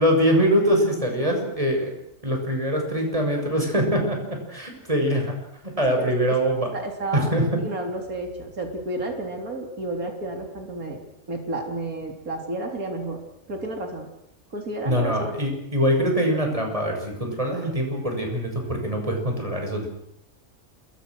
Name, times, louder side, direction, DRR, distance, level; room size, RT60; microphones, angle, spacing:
voice 1, 0.0-1.9 2.2-5.3 5.6-6.7 7.1-7.4 14.9-19.9, equal, 20° right, 2 dB, 7.0 m, -23 dB
voice 2, 6.0-6.4 6.7-7.3 7.6-11.0 11.3-13.2 13.5-14.1 14.5-15.4, right 2 dB, 70° right, 3 dB, 4.0 m, -31 dB
28.5 x 23.0 x 6.5 m, 0.79 s
omnidirectional pair, 1.5 m